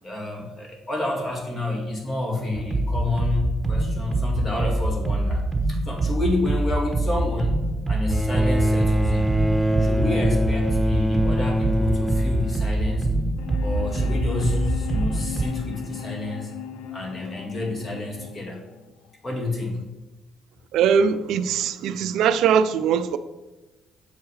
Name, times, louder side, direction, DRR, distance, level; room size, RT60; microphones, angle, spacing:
voice 1, 0.0-9.4 9.8-13.1 13.6-16.5 16.9-18.6 19.2-19.8, left 2 dB, 30° left, 2.1 m, -29 dB
sound 1, 2.6-15.4, right 2 dB, 25° right, 1.0 m, -24 dB
Bowed string instrument, 8.1-13.6 14.7-14.8, equal, ahead, 0.5 m, -24 dB
sound 2, 13.4-19.4, left 10 dB, 85° left, 0.5 m, -37 dB
voice 2, 20.7-23.2, right 7 dB, 75° right, 0.3 m, -21 dB
7.1 x 4.6 x 4.8 m
cardioid pair, 85°, 0 cm